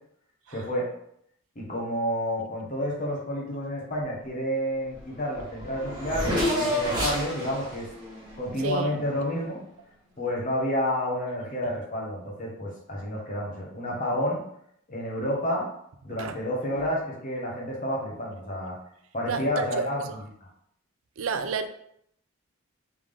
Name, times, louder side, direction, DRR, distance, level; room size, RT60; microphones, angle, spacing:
voice 1, 0.5-0.9 1.5-7.9 8.4-9.6 10.2-14.4 14.9-15.7 16.0-18.7 19.1-20.5, equal, 40° left, -3 dB, 1.0 m, -30 dB
Race car auto racing / Accelerating revving vroom, 5.0-5.1 5.3-9.3, equal, 20° right, 1.4 m, -30 dB
voice 2, 19.3-19.9 21.2-21.7, right 5 dB, 70° right, 8 dB, 0.4 m, -30 dB
3.6 x 3.5 x 3.4 m, 0.71 s
head